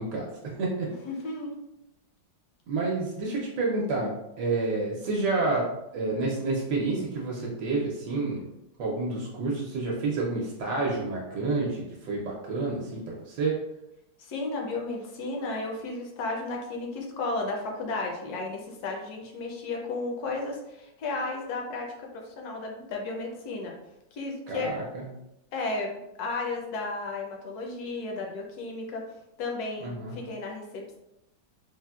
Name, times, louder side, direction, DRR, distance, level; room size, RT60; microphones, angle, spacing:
voice 1, 0.0-0.9 2.7-5.7 5.9-8.4 8.8-13.6 24.5-25.0 29.8-30.2, right 3 dB, 75° right, -3 dB, 1.2 m, -29 dB
voice 2, 1.0-1.6 14.2-23.8 24.1-24.7 25.5-29.1 29.4-31.0, left 3 dB, 70° left, 0 dB, 1.0 m, -33 dB
4.0 x 2.1 x 2.3 m, 0.88 s
omnidirectional pair, 2.0 m